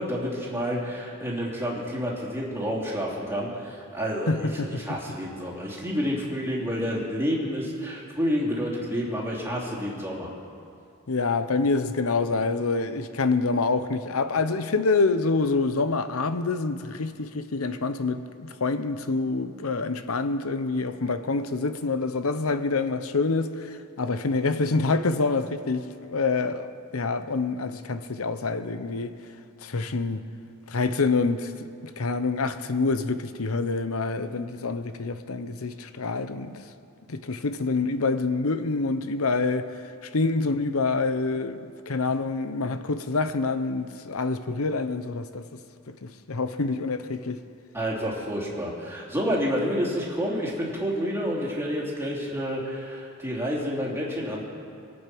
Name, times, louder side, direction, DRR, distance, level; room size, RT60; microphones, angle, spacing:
voice 1, 0.0-10.3 47.7-54.4, equal, 10° right, 3.0 m, -29 dB
voice 2, 4.3-5.0 11.1-29.1 29.6-30.3 30.7-31.7 32.0-36.5 37.1-39.7 40.0-45.4 45.9-47.4, left 3 dB, 75° left, 0.8 m, -26 dB
23.5 x 8.8 x 6.1 m
head